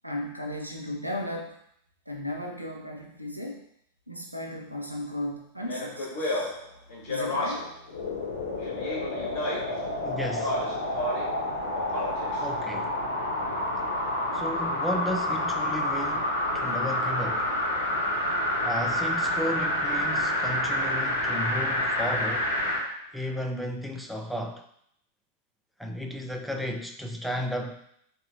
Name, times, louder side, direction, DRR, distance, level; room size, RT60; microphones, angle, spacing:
voice 1, 0.0-1.6 2.1-3.6 4.1-6.5 7.1-7.7, left 1 dB, 90° right, 1 dB, 0.5 m, -35 dB
Speech, 5.6-7.8 8.6-9.8 10.3-11.4 11.7-12.4, left 1 dB, 40° left, 1.2 m, -32 dB
sound 1, 7.9-22.9 23.3-23.4, left 1 dB, 70° left, 0.7 m, -28 dB
voice 2, 10.0-10.6 12.4-13.0 14.3-17.5 18.6-22.5 23.1-24.6 25.8-27.9, equal, ahead, 3 dB, 0.3 m, -34 dB
3.8 x 2.7 x 2.5 m, 0.70 s
figure-of-eight pair, 90°, 0 cm